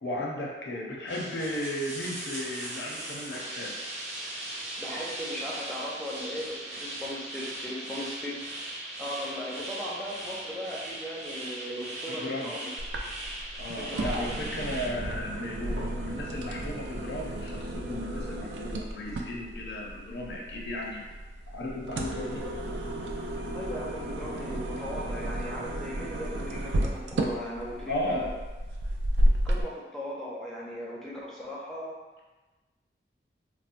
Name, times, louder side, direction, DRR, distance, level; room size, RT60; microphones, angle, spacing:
voice 1, 0.0-3.8 12.1-12.5 13.6-21.0 21.5-22.4 27.9-28.3, left 1 dB, 75° left, -2 dB, 0.5 m, -35 dB
sound 1, 1.1-14.9, right 1 dB, 40° right, 0.8 m, -39 dB
voice 2, 4.8-8.4 9.0-12.7 13.8-14.3 22.0-22.8 23.5-28.3 29.4-32.0, equal, ahead, -6 dB, 0.5 m, -38 dB
sound 2, 12.8-29.6, right 1 dB, 85° right, 0.4 m, -32 dB
sound 3, 14.7-28.1, right 1 dB, 70° right, 0.8 m, -52 dB
4.1 x 2.0 x 2.5 m, 1.2 s
head